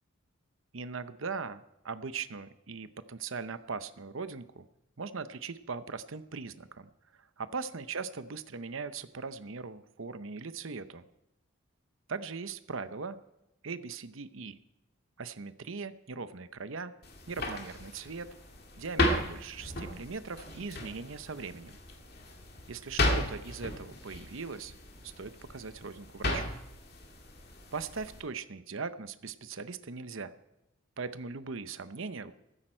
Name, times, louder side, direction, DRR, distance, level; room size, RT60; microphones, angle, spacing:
voice 1, 0.7-4.6 5.0-11.1 12.1-13.2 13.6-14.6 15.2-16.9 17.3-18.3 18.8-21.8 22.7-24.7 25.0-26.6 27.7-30.3 31.0-32.3, right 4 dB, 70° right, 12 dB, 0.8 m, -40 dB
sound 1, 17.0-28.2, left 1 dB, 45° left, 2.1 m, -35 dB
15.0 x 14.0 x 4.5 m, 0.88 s
head